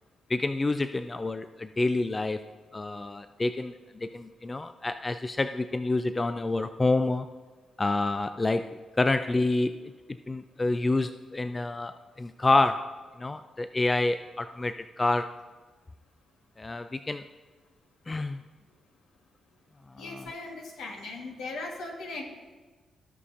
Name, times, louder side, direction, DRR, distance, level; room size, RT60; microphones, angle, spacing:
voice 1, 0.3-2.4 2.7-7.3 7.8-15.4 16.6-17.3 18.1-18.4 19.9-20.3, left 2 dB, 30° left, 11 dB, 0.4 m, -28 dB
voice 2, 20.0-22.2, left 3 dB, 80° left, 1 dB, 1.4 m, -38 dB
16.5 x 5.6 x 2.6 m, 1.4 s
hypercardioid pair, 45°, 0 cm